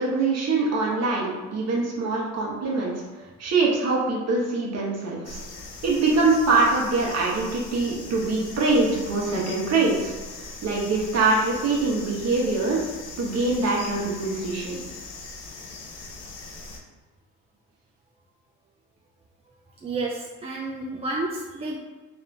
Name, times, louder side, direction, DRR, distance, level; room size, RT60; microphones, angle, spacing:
voice 1, 0.0-5.4 5.8-12.9 13.2-14.8, right 3 dB, 55° right, -3 dB, 1.2 m, -24 dB
sound 1, 5.2-16.8, left 3 dB, 80° left, 0.7 m, -40 dB
voice 2, 19.8-21.8, right 2 dB, 20° right, -2 dB, 0.4 m, -30 dB
3.5 x 2.6 x 3.4 m, 1.2 s
supercardioid pair, 90°, 31 cm